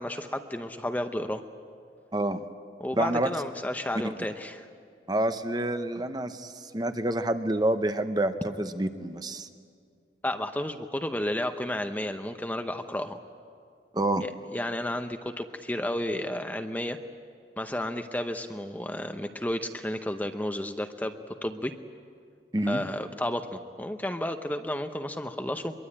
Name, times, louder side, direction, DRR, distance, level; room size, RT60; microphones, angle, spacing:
voice 1, 0.0-1.4 2.8-4.7 10.2-13.2 14.5-17.0 17.6-21.7 22.7-25.7, left 1 dB, 10° left, 7 dB, 0.7 m, -32 dB
voice 2, 2.1-2.4 2.9-3.3 5.1-9.5 13.9-14.2 22.5-22.8, right 1 dB, 20° right, 9 dB, 0.8 m, -28 dB
23.0 x 22.5 x 8.7 m, 2.2 s
head